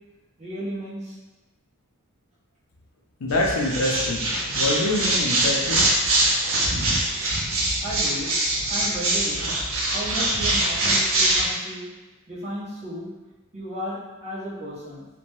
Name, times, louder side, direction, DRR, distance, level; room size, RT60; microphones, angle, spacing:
voice 1, 0.4-1.2 7.8-8.3 8.7-9.5 9.8-11.9 12.3-13.1 13.5-15.1, equal, 30° right, -10 dB, 1.0 m, -34 dB
voice 2, 3.2-5.9, left 1 dB, 65° left, -1 dB, 0.5 m, -25 dB
sound 1, 3.3-11.5, right 1 dB, 65° right, 0.6 m, -23 dB
2.6 x 2.1 x 3.1 m, 1.1 s
head